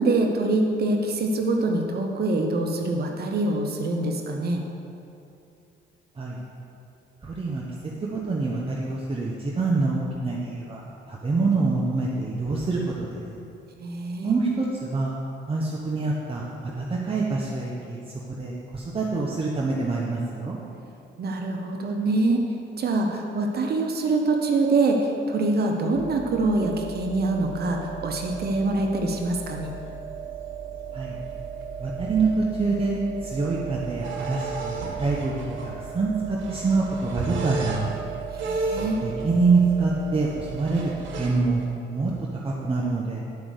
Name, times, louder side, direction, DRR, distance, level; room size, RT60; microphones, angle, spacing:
voice 1, 0.0-4.6 13.8-14.4 21.2-22.4 22.8-29.7 38.4-39.0, right 2 dB, 55° right, 2 dB, 0.9 m, -24 dB
voice 2, 7.2-7.6 8.1-10.8 11.1-13.2 14.2-15.2 15.5-18.0 18.4-20.6 30.9-31.2 31.8-37.9 39.0-42.1 42.4-43.2, right 3 dB, 30° right, -4 dB, 1.1 m, -26 dB
sound 1, 25.9-41.8, right 4 dB, 70° right, 1.7 m, -34 dB
9.6 x 5.1 x 6.5 m, 2.7 s
cardioid pair, 90°, 20 cm